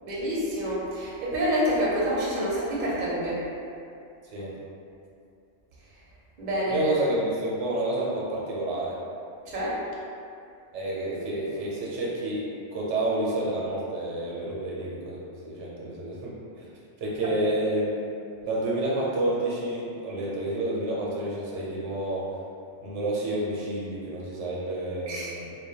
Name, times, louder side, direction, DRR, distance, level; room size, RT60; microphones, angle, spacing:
voice 1, 0.0-3.4 6.4-6.9 9.5-9.8 25.1-25.3, equal, 50° right, -6 dB, 0.6 m, -27 dB
voice 2, 6.7-9.0 10.7-12.4 12.7-16.7 17.0-17.9 18.4-22.2 22.8-25.5, right 1 dB, 80° right, -6 dB, 0.9 m, -29 dB
2.2 x 2.1 x 2.7 m, 2.5 s
omnidirectional pair, 1.2 m